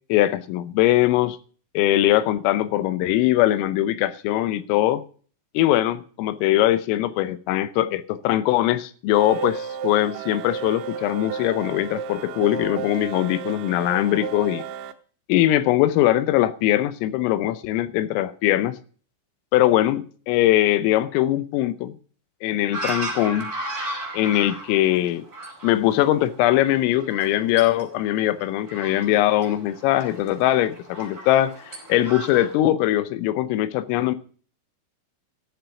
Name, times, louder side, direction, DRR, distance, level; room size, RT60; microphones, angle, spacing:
voice 1, 0.1-1.4 1.8-5.0 5.6-14.6 15.3-18.8 19.5-22.0 22.4-23.5 24.1-25.3 25.6-34.2, left 14 dB, 90° left, 3.5 m, -21 dB
sound 1, 9.1-14.9, right 7 dB, 75° right, 3.0 m, -33 dB
sound 2, 22.7-32.6, right 1 dB, 15° right, 4.8 m, -35 dB
14.0 x 7.6 x 6.9 m
omnidirectional pair, 5.8 m